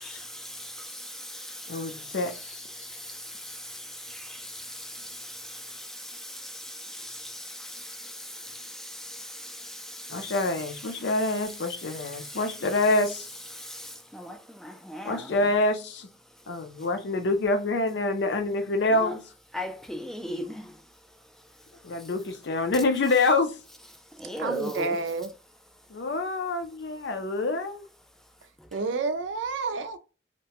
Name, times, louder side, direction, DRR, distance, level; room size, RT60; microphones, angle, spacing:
voice 1, 0.2-10.4 11.0-11.1 11.8-12.4 13.5-15.3 19.0-19.1 19.5-20.8 24.2-25.0 28.7-28.8, equal, ahead, 0.3 m, -39 dB
voice 2, 1.7-2.6 10.1-13.3 15.1-16.1 16.5-19.2 21.8-23.5 25.9-27.9, left 2 dB, 70° left, 0.5 m, -26 dB
voice 3, 24.4-25.3 28.7-30.0, right 4 dB, 90° right, 0.4 m, -29 dB
2.8 x 2.2 x 2.8 m
head